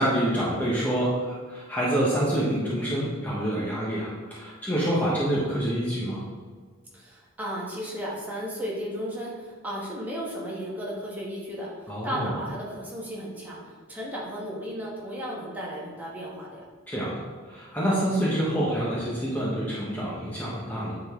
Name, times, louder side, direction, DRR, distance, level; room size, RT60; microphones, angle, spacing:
voice 1, 0.0-6.2 11.9-12.3 16.9-17.1 17.5-21.0, right 1 dB, 10° left, -7 dB, 1.0 m, -27 dB
voice 2, 6.9-16.6, equal, 10° right, -5 dB, 1.4 m, -34 dB
8.8 x 3.9 x 3.7 m, 1.5 s
head